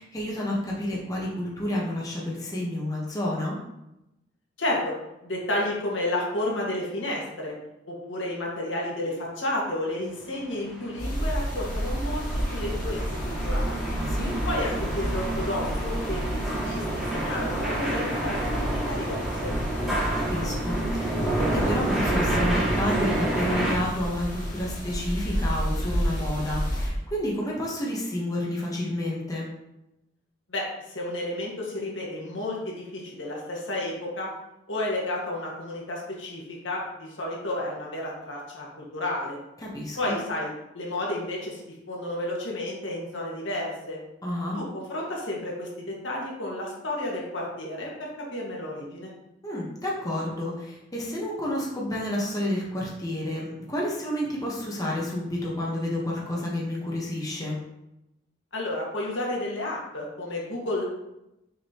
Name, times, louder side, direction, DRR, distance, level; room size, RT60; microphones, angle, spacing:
voice 1, 0.0-3.6 13.9-14.3 19.8-29.5 39.6-40.2 44.2-44.6 49.4-57.6, left 1 dB, 20° left, -4 dB, 1.3 m, -30 dB
voice 2, 4.6-4.9 5.2-7.5 7.9-13.9 14.5-19.5 30.5-34.3 34.7-38.7 38.9-39.4 40.0-44.0 44.5-49.1 58.5-60.8, left 1 dB, 80° left, -3 dB, 1.9 m, -31 dB
sound 1, 10.5-23.7, right 1 dB, ahead, 2.3 m, -29 dB
sound 2, 11.0-26.9, equal, 40° left, 2.2 m, -31 dB
6.6 x 5.1 x 3.0 m, 0.89 s
head